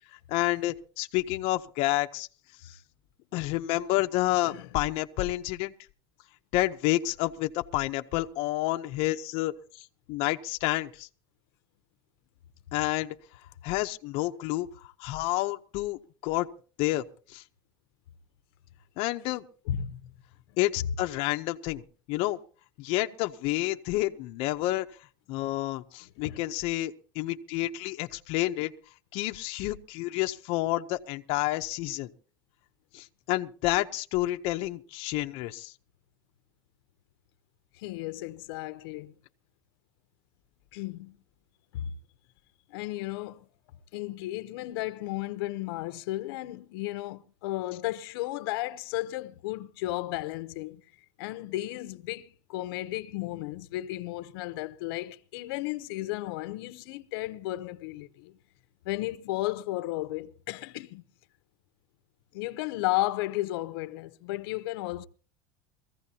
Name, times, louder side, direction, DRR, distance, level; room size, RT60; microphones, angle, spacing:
voice 1, 0.3-2.3 2.6-2.8 3.3-5.7 6.5-11.1 12.7-13.1 13.6-16.5 16.8-17.4 19.0-19.5 20.6-21.8 22.1-22.4 22.8-24.9 25.3-28.7 29.1-32.1 32.9-35.7, left 17 dB, 50° left, 0.7 m, -29 dB
voice 2, 19.7-20.0 26.2-26.4 37.7-39.1 40.7-41.2 41.7-41.9 42.7-43.4 43.9-50.8 51.2-58.4 58.8-61.0 62.3-65.1, left 16 dB, 75° left, 0.8 m, -34 dB
22.5 x 15.5 x 2.8 m
cardioid pair, 170°, 13 cm